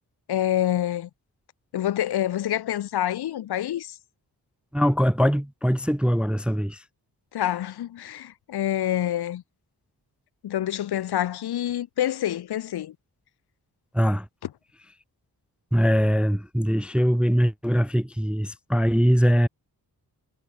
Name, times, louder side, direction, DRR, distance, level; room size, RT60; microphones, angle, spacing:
voice 1, 0.3-1.1 1.7-4.0 7.3-9.4 10.4-12.9, left 12 dB, 80° left, 0.6 m, -27 dB
voice 2, 4.7-6.8 13.9-14.3 15.7-19.5, equal, 5° right, 0.3 m, -22 dB
wide cardioid pair, 165°, 38 cm